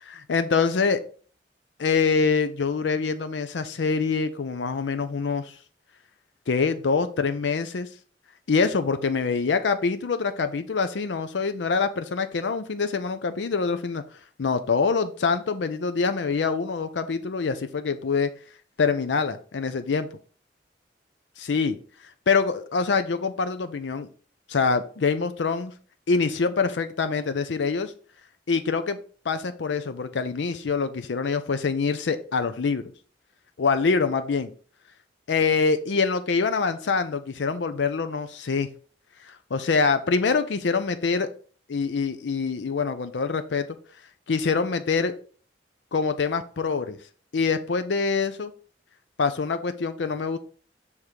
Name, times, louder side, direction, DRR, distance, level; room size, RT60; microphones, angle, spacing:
voice 1, 0.3-1.0 1.8-5.5 6.5-7.9 8.5-14.0 14.4-18.3 18.8-20.1 21.4-21.8 22.3-24.1 24.5-25.7 26.1-27.9 28.5-29.0 29.3-32.9 33.6-34.5 35.3-38.7 39.3-41.3 41.7-43.7 44.3-45.1 45.9-47.0 47.3-48.5 49.2-50.4, left 5 dB, 85° left, 10 dB, 0.5 m, -25 dB
6.6 x 3.6 x 4.5 m, 0.42 s
head